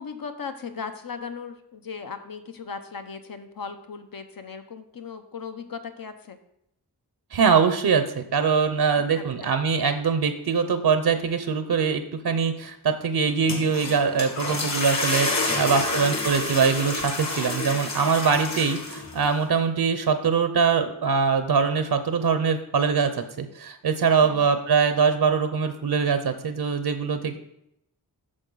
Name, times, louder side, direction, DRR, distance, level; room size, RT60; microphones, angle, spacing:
voice 1, 0.0-6.4 8.9-9.5 15.5-16.2 24.2-24.6, left 5 dB, 60° left, 8 dB, 0.9 m, -38 dB
voice 2, 7.3-27.4, right 5 dB, 70° right, 9 dB, 0.7 m, -23 dB
sound 1, 13.3-19.3, left 2 dB, 45° left, 1.6 m, -29 dB
8.7 x 6.4 x 3.9 m, 0.78 s
wide cardioid pair, 115°, 39 cm